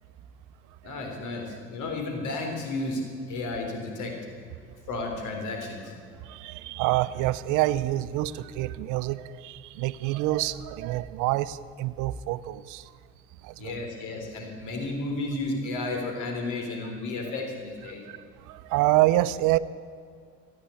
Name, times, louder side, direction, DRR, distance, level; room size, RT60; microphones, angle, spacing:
voice 1, 0.8-3.0 3.3-4.1 4.9-5.8 13.6-18.0, left 2 dB, 75° left, 2 dB, 3.8 m, -32 dB
voice 2, 6.3-12.8 13.4-13.7 18.1-18.2 18.5-19.6, right 16 dB, 85° right, 15 dB, 0.6 m, -27 dB
15.0 x 9.2 x 8.6 m, 2.3 s
supercardioid pair, 75°, 30 cm